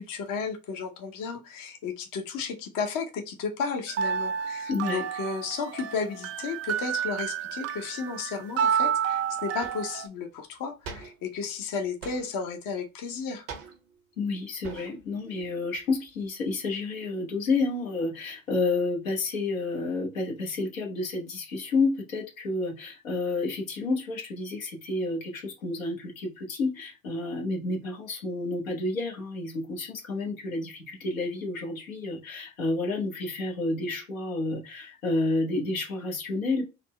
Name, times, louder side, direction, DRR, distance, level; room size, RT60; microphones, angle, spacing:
voice 1, 0.0-13.5, left 5 dB, 55° left, 0.9 m, -33 dB
sound 1, 3.9-10.1, right 8 dB, 40° right, 0.5 m, -30 dB
voice 2, 4.7-5.0 14.2-36.7, left 3 dB, 85° left, 1.0 m, -30 dB
sound 2, 8.9-9.0 9.6-10.0 10.8-11.4 12.0-12.5 13.5-14.1 14.6-15.1 15.4-16.3, right 5 dB, 85° right, 0.9 m, -43 dB
4.2 x 2.2 x 3.1 m
hypercardioid pair, 60°, 39 cm